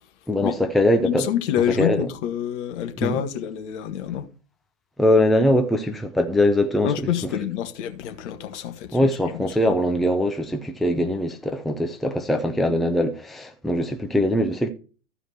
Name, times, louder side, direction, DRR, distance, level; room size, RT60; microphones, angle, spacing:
voice 1, 0.3-1.3 1.7-2.1 3.0-3.2 5.0-7.1 8.9-14.7, left 1 dB, ahead, 0.7 m, -22 dB
voice 2, 1.0-4.3 6.8-9.7, left 10 dB, 55° left, 1.7 m, -27 dB
14.5 x 5.0 x 4.4 m
hypercardioid pair, 115°, 43 cm